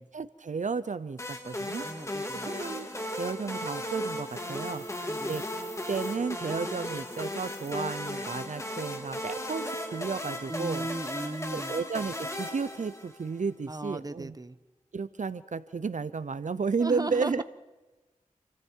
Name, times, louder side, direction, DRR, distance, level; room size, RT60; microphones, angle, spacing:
voice 1, 0.0-1.9 2.3-5.0 5.3-5.4 5.9-10.9 11.5-14.4 14.9-17.4, right 5 dB, 70° right, 15 dB, 0.7 m, -33 dB
sound 1, 1.2-13.4, left 1 dB, 20° left, 3.0 m, -36 dB
voice 2, 1.8-2.5 5.1-5.4 10.5-11.7 13.7-14.6 16.8-17.4, right 2 dB, 30° right, 13 dB, 1.1 m, -36 dB
sound 2, 4.1-6.2 6.8-7.7, left 2 dB, 45° left, 2.4 m, -53 dB
29.0 x 24.5 x 4.6 m, 1.2 s
wide cardioid pair, 65°, 13 cm